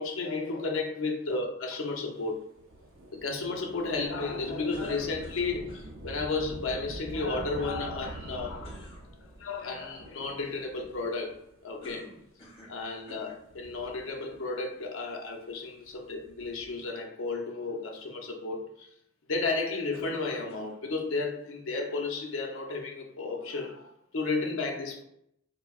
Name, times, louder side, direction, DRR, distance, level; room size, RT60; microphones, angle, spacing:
voice 1, 0.0-2.5 3.1-8.8 9.2-12.1 12.7-18.9 19.3-25.0, left 3 dB, 90° left, 0.7 m, -33 dB
Thunder / Rain, 2.6-11.5 12.3-12.4 13.3-14.6 16.1-16.9, right 1 dB, 85° right, 0.5 m, -45 dB
sound 1, 4.7-5.9 8.6-9.0 11.8-12.8 13.1-13.4 14.2-14.3 19.9-20.8, left 1 dB, 30° left, 1.2 m, -50 dB
4.6 x 2.2 x 2.4 m
head